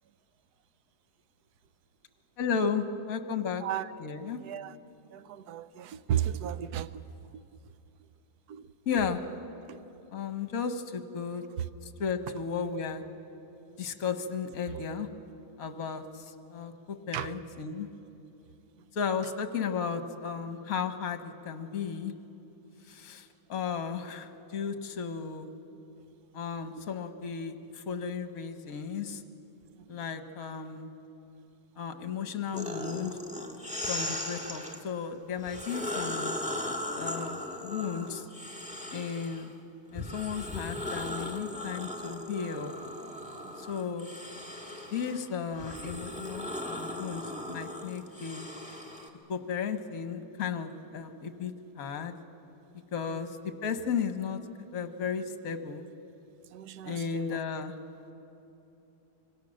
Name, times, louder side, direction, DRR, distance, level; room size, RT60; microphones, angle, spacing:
voice 1, 2.4-3.6 4.0-4.4 8.8-9.2 10.1-11.4 12.0-13.0 13.8-15.1 15.6-16.2 16.5-16.7 17.1-17.9 18.9-22.1 22.9-25.5 26.3-29.2 29.9-30.9 31.8-33.2 33.9-36.4 37.0-38.3 38.9-39.5 39.9-42.7 43.6-44.1 44.9-48.5 49.3-52.1 52.9-54.4 54.7-55.9 56.8-57.7, left 6 dB, 50° left, 8 dB, 1.5 m, -34 dB
voice 2, 4.4-4.8 5.0-7.0 7.3-7.4 8.5-8.7 9.7-9.8 11.6-11.7 14.7-14.8 17.1-17.3 24.0-24.1 29.8-30.1 43.4-43.6 53.1-53.3 56.5-57.4, right 10 dB, 65° right, 14 dB, 1.0 m, -35 dB
sound 1, 32.5-34.8 35.4-39.5 39.9-49.1, left 1 dB, 5° right, 1.6 m, -38 dB
26.5 x 24.5 x 6.4 m, 2.8 s
omnidirectional pair, 2.2 m